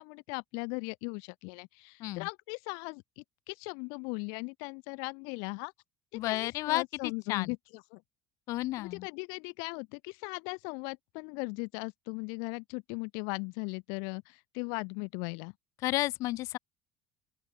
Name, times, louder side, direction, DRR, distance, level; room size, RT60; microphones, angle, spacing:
voice 1, 0.0-5.7 6.1-7.6 7.9-8.0 8.8-15.5, left 37 dB, 80° left, 1.2 m, -38 dB
voice 2, 6.1-7.5 8.5-9.1 15.8-16.6, left 18 dB, 55° left, 1.2 m, -32 dB
open air
cardioid pair, 165°, 7 cm